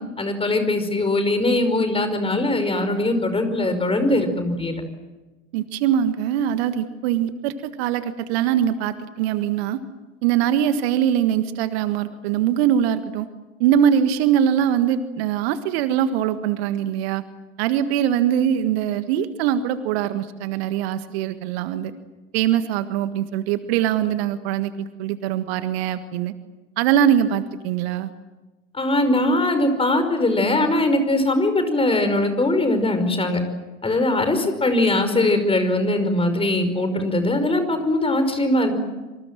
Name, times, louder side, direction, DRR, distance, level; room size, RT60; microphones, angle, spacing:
voice 1, 0.2-4.8 28.7-33.4 33.8-38.7, left 2 dB, 15° left, 8 dB, 5.3 m, -21 dB
voice 2, 5.5-9.8 10.2-13.3 13.6-17.2 17.6-21.9 22.3-26.3 26.8-28.1, right 9 dB, 55° right, 11 dB, 1.7 m, -22 dB
27.0 x 26.0 x 7.6 m, 1.2 s
figure-of-eight pair, 80°, 38 cm